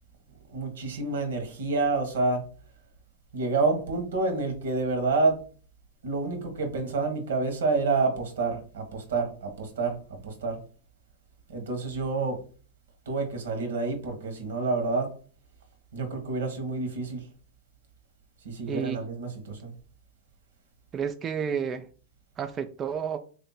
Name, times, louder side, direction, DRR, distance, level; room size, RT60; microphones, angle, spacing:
voice 1, 0.5-2.4 3.3-5.4 6.0-10.6 11.5-12.4 13.1-15.1 15.9-17.2 18.4-19.7, right 3 dB, 85° right, 1.3 m, -28 dB
voice 2, 18.7-19.0 20.9-21.9 22.4-23.2, right 7 dB, 25° right, 0.3 m, -31 dB
3.3 x 2.8 x 4.0 m
supercardioid pair, 135°, 0 cm